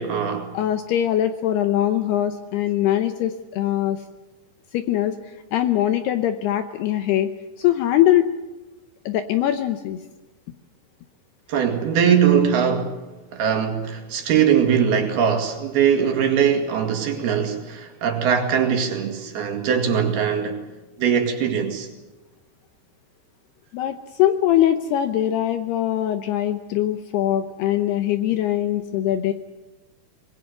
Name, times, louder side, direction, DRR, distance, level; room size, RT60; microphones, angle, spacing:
voice 1, 0.0-0.5 11.5-13.0 13.3-20.6 21.0-21.9, right 7 dB, 60° right, 3.8 m, -21 dB
voice 2, 0.5-4.0 4.7-5.2 5.5-7.3 7.6-8.3 9.1-10.0 23.7-29.3, left 12 dB, 75° left, 2.5 m, -22 dB
25.5 x 20.5 x 8.0 m
omnidirectional pair, 5.5 m